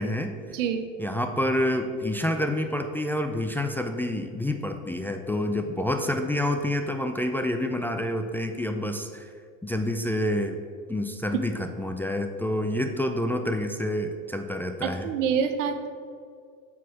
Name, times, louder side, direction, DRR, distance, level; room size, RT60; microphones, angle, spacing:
voice 1, 0.0-0.4 1.0-9.3 9.6-10.6 10.9-15.1, left 1 dB, 5° left, 5 dB, 0.4 m, -28 dB
voice 2, 0.5-0.8 14.8-15.9, right 7 dB, 75° right, 8 dB, 0.8 m, -26 dB
6.0 x 4.8 x 5.8 m, 2.2 s
hypercardioid pair, 80°, 37 cm